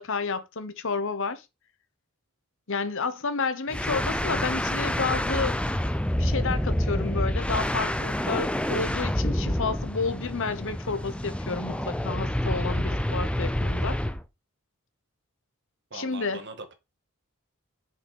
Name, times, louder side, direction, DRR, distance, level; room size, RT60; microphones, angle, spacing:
voice 1, 0.0-1.4 2.7-5.6 6.2-14.0 15.9-16.4, left 4 dB, 60° left, 1.0 m, -30 dB
sound 1, 3.7-14.2, left 1 dB, 5° left, 0.6 m, -28 dB
voice 2, 15.9-16.7, right 3 dB, 50° right, 1.9 m, -41 dB
6.4 x 5.6 x 4.6 m
head